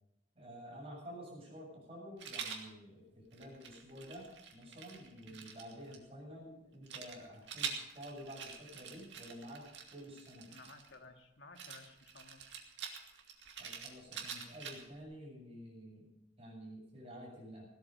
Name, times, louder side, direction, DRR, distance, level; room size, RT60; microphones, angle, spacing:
voice 1, 0.4-9.6 9.9-10.5 13.6-16.0 16.4-17.7, equal, 35° right, -3 dB, 7.6 m, -50 dB
Rattle, 2.2-2.7 3.3-6.0 6.9-10.9 11.6-15.0, right 6 dB, 80° right, 2.3 m, -46 dB
voice 2, 10.5-12.4, left 3 dB, 80° left, 5 dB, 1.9 m, -56 dB
17.0 x 13.0 x 5.3 m, 0.82 s
head